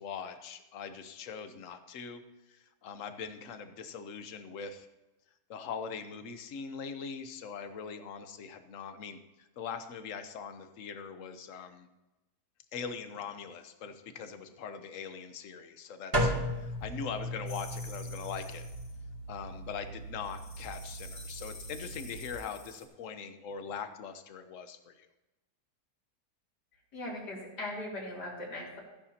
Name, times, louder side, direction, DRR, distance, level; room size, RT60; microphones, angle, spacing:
voice 1, 0.0-2.2 2.5-4.9 5.5-11.9 12.7-18.7 19.3-25.1, left 6 dB, 55° left, 9 dB, 1.1 m, -42 dB
sound 1, 16.1-22.3, equal, 15° right, 2.5 m, -36 dB
sound 2, 17.5-19.0 20.2-22.8, left 3 dB, 40° left, 1.7 m, -50 dB
voice 2, 26.9-28.8, left 1 dB, 70° left, -4 dB, 3.5 m, -39 dB
15.0 x 10.0 x 2.8 m, 1.0 s
omnidirectional pair, 1.8 m